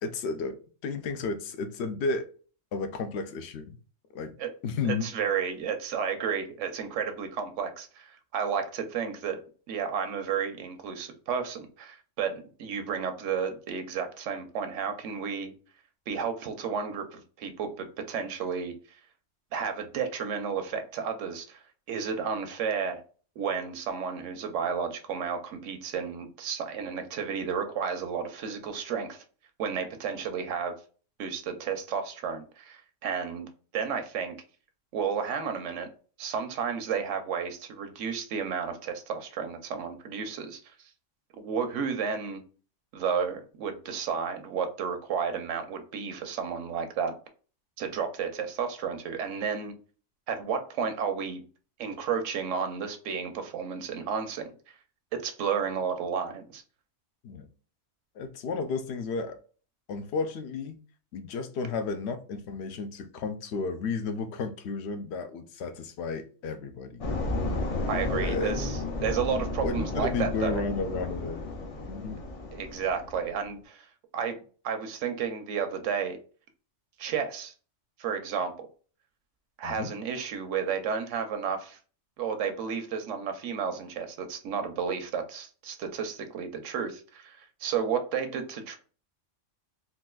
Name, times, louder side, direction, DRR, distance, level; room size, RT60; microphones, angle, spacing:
voice 1, 0.0-0.5 0.8-2.3 2.7-3.8 4.1-4.3 4.6-5.1 57.2-57.5 58.2-59.4 59.9-60.8 61.1-67.0 68.1-68.6 69.6-71.4 71.9-72.2 79.6-79.9, left 4 dB, 70° left, 8 dB, 0.8 m, -32 dB
voice 2, 4.8-9.4 9.7-15.5 16.1-18.7 19.5-21.6 21.9-23.0 23.4-29.2 29.6-30.7 31.2-33.5 33.7-34.4 34.9-35.9 36.2-40.6 41.3-42.4 42.9-47.1 47.8-49.8 50.3-51.4 51.8-54.5 55.1-56.6 67.9-70.6 72.5-73.9 74.1-74.4 74.6-76.2 77.0-77.5 78.0-78.7 79.6-81.8 82.2-88.8, right 6 dB, 85° right, 7 dB, 1.0 m, -32 dB
sound 1, 67.0-73.3, left 2 dB, 50° left, 0.4 m, -33 dB
3.9 x 2.4 x 2.2 m, 0.39 s
omnidirectional pair, 1.2 m